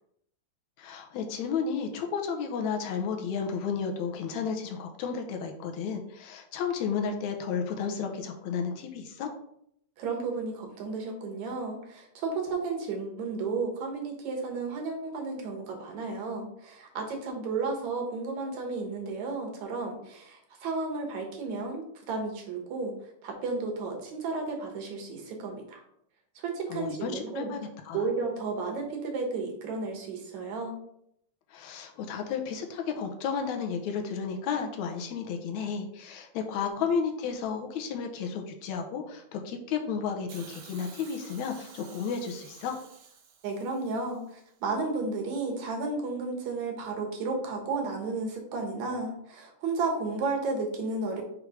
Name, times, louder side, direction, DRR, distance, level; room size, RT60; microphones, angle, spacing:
voice 1, 0.8-9.3 26.7-28.1 31.5-42.7, left 6 dB, 80° left, 3 dB, 2.1 m, -32 dB
voice 2, 10.0-22.9 23.2-25.8 26.4-27.5 27.9-30.8 43.4-51.2, right 3 dB, 75° right, 1 dB, 2.5 m, -33 dB
Hiss, 40.3-44.4 45.4-45.5, right 7 dB, 90° right, 2.3 m, -51 dB
6.3 x 3.2 x 5.0 m, 0.72 s
omnidirectional pair, 3.3 m